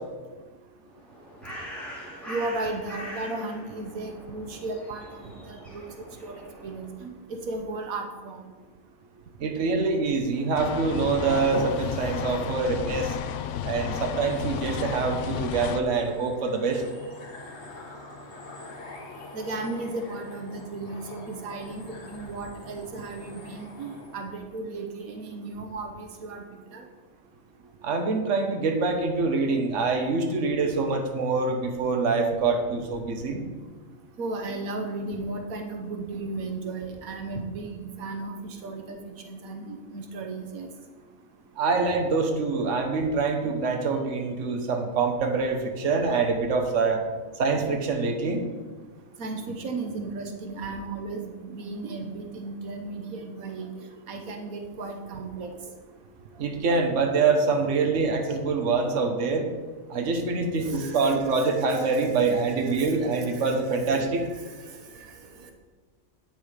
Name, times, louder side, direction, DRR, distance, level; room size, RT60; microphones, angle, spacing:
Bird, 0.9-7.0, equal, ahead, 3.1 m, -42 dB
voice 1, 2.3-8.4 19.3-26.4 26.7-26.8 34.2-39.0 39.2-40.7 49.2-53.7 54.1-55.5 60.6-65.1 65.4-65.5, right 3 dB, 85° right, 4 dB, 1.4 m, -35 dB
voice 2, 9.4-13.1 13.6-16.8 27.8-33.4 41.6-47.0 47.4-48.4 56.4-59.4 59.9-64.2, right 4 dB, 60° right, 4 dB, 1.4 m, -25 dB
sound 1, 10.3-24.3, left 2 dB, 55° left, 1.5 m, -43 dB
sound 2, 10.6-15.8, left 9 dB, 70° left, 0.8 m, -33 dB
9.2 x 7.3 x 5.0 m, 1.3 s
omnidirectional pair, 1.4 m